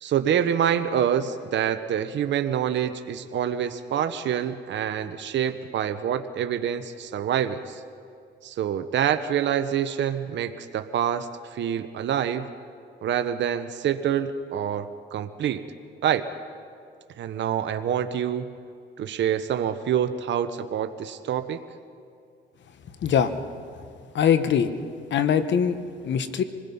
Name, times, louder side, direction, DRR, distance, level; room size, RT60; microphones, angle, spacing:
voice 1, 0.0-7.8 8.4-12.5 13.0-15.7 16.0-16.3 17.2-18.5 19.0-21.6, right 9 dB, 65° right, 9 dB, 0.9 m, -26 dB
voice 2, 23.0-23.3 24.1-24.7 25.1-25.8 26.0-26.4, left 8 dB, 65° left, 10 dB, 1.2 m, -21 dB
26.0 x 20.0 x 5.5 m, 2.3 s
cardioid pair, 90°, 20 cm